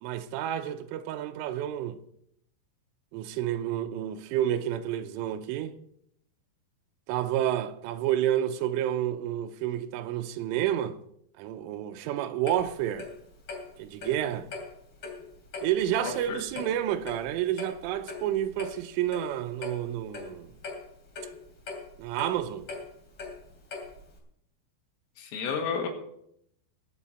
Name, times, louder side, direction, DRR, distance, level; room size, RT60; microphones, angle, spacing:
voice 1, 0.0-2.0 3.1-5.7 7.1-11.0 11.4-13.1 13.8-14.5 15.6-20.5 22.0-22.7, right 11 dB, 80° right, 3.2 m, -30 dB
Clock, 12.5-24.2, left 4 dB, 35° left, 3.2 m, -42 dB
voice 2, 16.0-16.4 25.2-25.9, left 6 dB, 90° left, 4.5 m, -32 dB
21.0 x 8.1 x 4.4 m
omnidirectional pair, 5.8 m